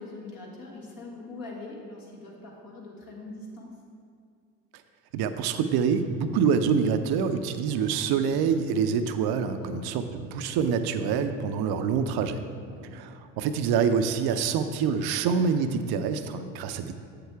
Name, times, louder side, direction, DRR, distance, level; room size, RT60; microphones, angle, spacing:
voice 1, 0.0-3.7 9.6-10.0 12.6-13.0, left 2 dB, 55° left, -3 dB, 1.9 m, -42 dB
voice 2, 5.1-12.4 12.9-16.9, right 6 dB, 65° right, 9 dB, 0.6 m, -26 dB
7.6 x 6.7 x 3.4 m, 2.2 s
hypercardioid pair, 55°, 41 cm